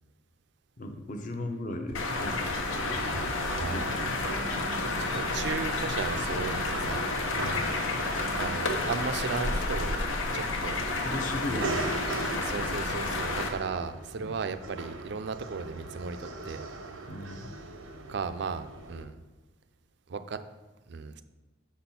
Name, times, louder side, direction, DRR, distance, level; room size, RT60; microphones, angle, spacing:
voice 1, 0.8-2.4 3.6-4.2 7.3-7.7 11.0-11.9 14.2-14.3 17.1-17.5, left 1 dB, 40° left, 5 dB, 0.6 m, -37 dB
sound 1, 1.9-13.5, left 2 dB, 80° left, 0.8 m, -30 dB
sound 2, 1.9-19.0, right 3 dB, 85° right, 0.7 m, -41 dB
voice 2, 3.6-4.1 5.0-7.1 8.3-10.8 11.5-11.7 12.3-16.6 18.1-19.1 20.1-20.4 20.9-21.2, right 5 dB, 60° right, 11 dB, 0.4 m, -36 dB
6.1 x 4.3 x 5.6 m, 1.2 s
head